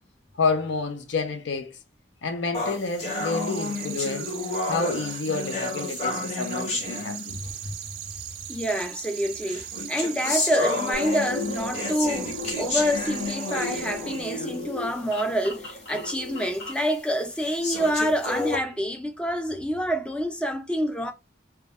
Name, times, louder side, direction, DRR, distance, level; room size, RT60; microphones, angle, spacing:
voice 1, 0.4-1.8 2.2-4.3 4.7-7.3, left 4 dB, 90° left, 0.5 m, -29 dB
sound 1, 2.5-7.7 8.5-8.6 9.4-14.7 15.1-15.2 15.8-15.9 16.5-16.6 17.4-18.6, left 2 dB, 40° left, 0.7 m, -31 dB
sound 2, 2.8-14.6, right 11 dB, 55° right, 0.5 m, -39 dB
voice 2, 7.3-7.7 8.5-21.1, equal, 5° left, 0.4 m, -27 dB
sound 3, 10.9-16.9, left 1 dB, 70° left, 1.1 m, -36 dB
2.2 x 2.1 x 2.8 m
head